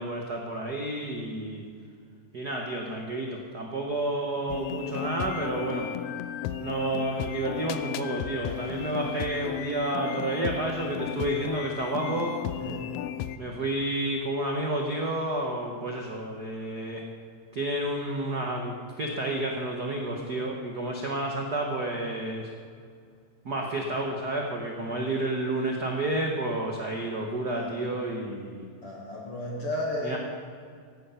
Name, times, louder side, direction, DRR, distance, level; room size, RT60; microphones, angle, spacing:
voice 1, 0.0-1.6 2.3-5.9 6.6-12.4 13.4-17.0 17.5-22.5 23.4-28.6 30.0-30.2, right 1 dB, 75° right, 0 dB, 0.9 m, -30 dB
sound 1, 4.5-13.4, left 11 dB, 85° left, 1.7 m, -34 dB
voice 2, 28.8-30.2, left 1 dB, 45° left, -2 dB, 2.4 m, -33 dB
15.5 x 11.5 x 5.7 m, 2.1 s
omnidirectional pair, 3.9 m